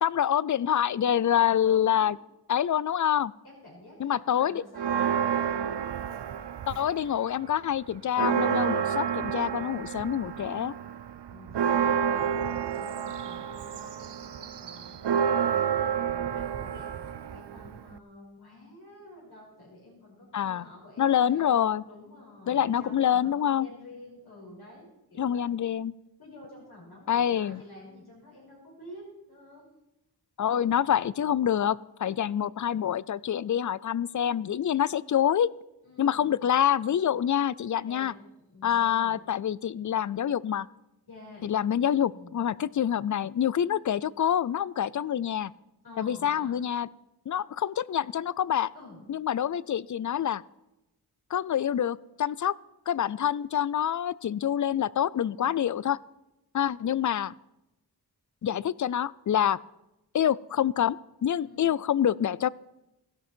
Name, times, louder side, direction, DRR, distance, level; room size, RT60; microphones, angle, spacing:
voice 1, 0.0-2.2 2.5-3.3 4.0-4.6 6.7-10.7 20.3-20.7 21.0-21.8 22.5-23.7 25.2-25.9 27.1-27.6 30.4-35.5 36.0-38.1 38.6-40.7 41.4-45.5 46.0-46.9 47.3-48.7 49.1-50.4 51.3-52.5 52.9-56.0 56.5-57.3 58.4-59.6 60.1-61.0 61.2-62.5, left 9 dB, 50° left, 21 dB, 0.4 m, -26 dB
voice 2, 1.6-2.1 3.4-5.9 11.3-21.6 21.8-25.4 26.2-29.7 35.8-36.4 37.8-39.2 41.1-41.5 42.1-42.5 45.8-46.6 48.7-49.0 55.2-55.6 61.4-61.8, left 1 dB, 70° left, -5 dB, 5.8 m, -50 dB
Church bell, 4.7-7.1 7.5-7.6 7.9-18.0, right 8 dB, 85° right, 0.6 m, -29 dB
16.0 x 12.0 x 4.5 m, 0.91 s
wide cardioid pair, 75°, 40 cm